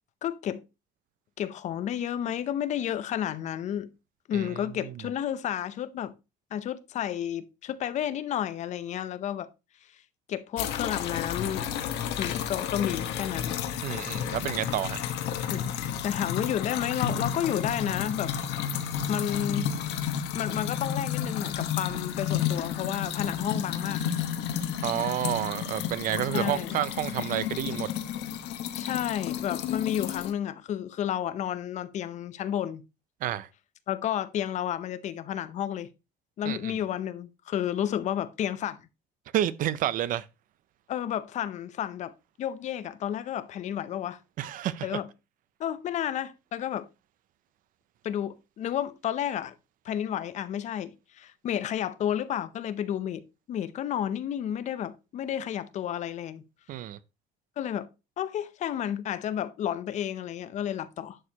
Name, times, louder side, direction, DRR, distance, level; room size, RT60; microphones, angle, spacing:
voice 1, 0.2-0.6 1.4-3.9 4.3-6.1 6.5-9.5 10.3-11.7 12.2-13.6 15.5-15.8 16.0-18.3 19.1-19.7 20.3-24.1 26.3-26.8 28.8-32.8 33.9-35.9 36.4-38.8 40.9-42.1 42.4-44.2 44.8-45.1 45.6-46.9 48.0-49.5 49.8-56.4 57.6-57.9 58.2-61.2, left 10 dB, 40° left, 0.6 m, -31 dB
sound 1, 10.6-30.3, left 9 dB, 80° left, 1.2 m, -32 dB
voice 2, 13.8-15.0 24.8-27.9 33.2-33.5 36.4-36.8 39.3-40.3 44.4-45.0 56.7-57.0, right 12 dB, 50° right, 0.6 m, -30 dB
11.0 x 6.5 x 2.9 m
cardioid pair, 170°, 18 cm